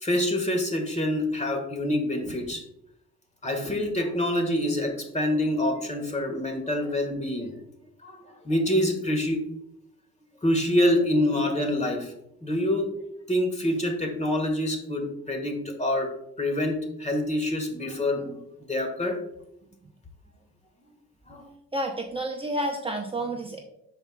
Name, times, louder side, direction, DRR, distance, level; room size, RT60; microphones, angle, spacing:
voice 1, 0.0-2.6 3.4-7.6 8.0-9.4 10.4-12.1 12.4-12.9 13.3-18.4 18.7-19.2 21.3-21.5, left 1 dB, 25° left, 4 dB, 1.7 m, -26 dB
voice 2, 21.7-23.6, right 1 dB, 20° right, 1 dB, 0.8 m, -30 dB
12.5 x 4.6 x 2.4 m, 0.81 s
cardioid pair, 90°, 30 cm